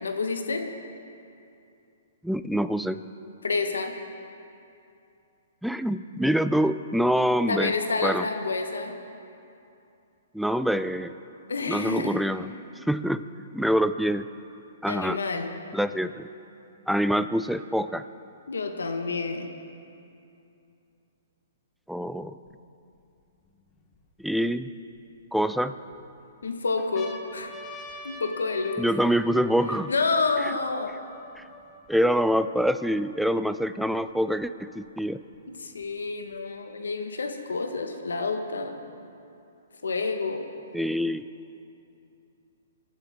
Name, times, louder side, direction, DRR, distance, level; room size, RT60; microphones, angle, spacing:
voice 1, 0.0-0.7 3.4-3.9 7.5-9.0 11.5-12.2 14.9-15.5 18.5-19.5 26.4-27.5 28.0-28.9 29.9-31.0 35.6-38.8 39.8-40.4, left 4 dB, 90° left, 5 dB, 1.4 m, -29 dB
voice 2, 2.2-3.0 5.6-7.7 8.0-8.3 10.3-11.2 11.7-12.5 12.9-14.3 14.8-15.2 15.7-16.3 16.9-18.0 21.9-22.4 24.2-24.7 25.3-25.7 28.8-29.9 30.4-30.5 31.4-31.5 31.9-35.2 40.7-41.3, equal, ahead, 12 dB, 0.4 m, -25 dB
sound 1, 22.5-22.6 23.2-24.5 25.2-26.0 26.4-26.5 26.8-32.4 33.1-33.2 33.4-34.4 35.3-36.4, left 2 dB, 20° left, 1.5 m, -45 dB
22.5 x 11.5 x 3.7 m, 2.6 s
hypercardioid pair, 140°, 0 cm